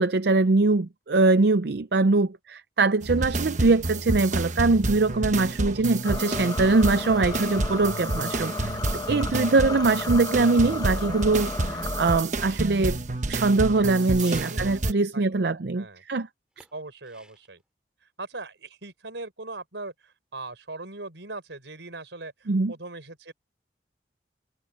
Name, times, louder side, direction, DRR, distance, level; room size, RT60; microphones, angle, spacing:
voice 1, 0.0-13.0 13.3-16.3 16.6-16.7 22.5-22.7, right 3 dB, 65° right, 0.5 m, -22 dB
sound 1, 3.0-14.9, right 2 dB, 40° right, 1.2 m, -29 dB
sound 2, 6.0-12.2, left 3 dB, 20° left, 0.8 m, -34 dB
Fireworks, 7.2-14.8 16.6-17.6, right 1 dB, 5° right, 3.3 m, -53 dB
voice 2, 9.3-9.9 14.2-14.8 15.1-16.0 16.7-17.6 18.2-23.3, right 2 dB, 85° right, 4.5 m, -40 dB
head